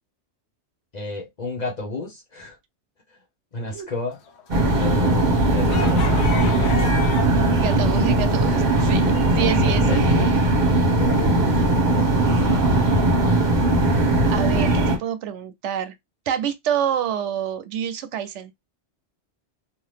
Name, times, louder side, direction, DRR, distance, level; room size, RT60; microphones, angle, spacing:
voice 1, 0.9-2.6 3.1-3.2 3.5-4.2 4.8-6.2 9.6-10.3 11.0-11.7, left 2 dB, 40° left, 0.8 m, -32 dB
sound 1, 4.3-7.5 7.8-9.1, left 5 dB, 70° left, 0.9 m, -33 dB
sound 2, 4.5-15.0, right 1 dB, 40° right, 1.0 m, -19 dB
voice 2, 7.5-9.9 14.2-15.9 16.3-18.5, right 9 dB, 75° right, 0.9 m, -27 dB
2.8 x 2.3 x 3.3 m
omnidirectional pair, 1.2 m